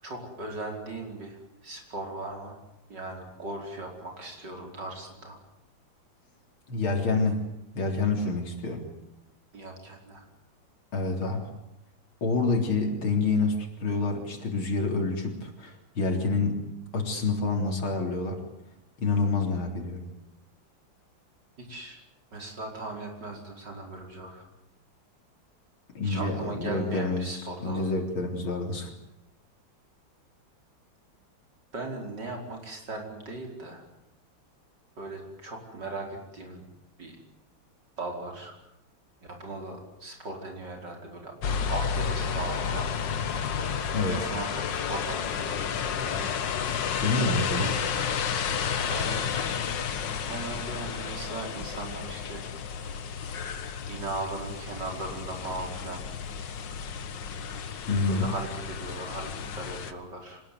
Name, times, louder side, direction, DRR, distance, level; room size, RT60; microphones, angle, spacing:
voice 1, 0.0-2.6 2.9-5.4 9.5-10.3 21.6-22.0 22.3-24.4 26.0-27.9 31.7-33.8 35.0-36.7 37.0-37.2 38.0-38.5 39.2-41.3 41.7-42.9 44.1-46.4 47.4-47.7 48.9-49.3 50.3-52.4 53.9-56.0 58.1-60.4, right 2 dB, 55° right, 2 dB, 5.6 m, -38 dB
voice 2, 6.7-7.4 7.7-8.9 10.9-11.5 12.2-16.6 16.9-18.4 19.0-20.1 25.9-28.9 43.9-44.3 47.0-47.7 57.9-58.3, left 3 dB, 85° left, 4 dB, 4.5 m, -28 dB
sound 1, 41.4-59.9, left 7 dB, 65° left, 1.9 m, -32 dB
25.5 x 19.5 x 9.4 m, 0.90 s
omnidirectional pair, 2.2 m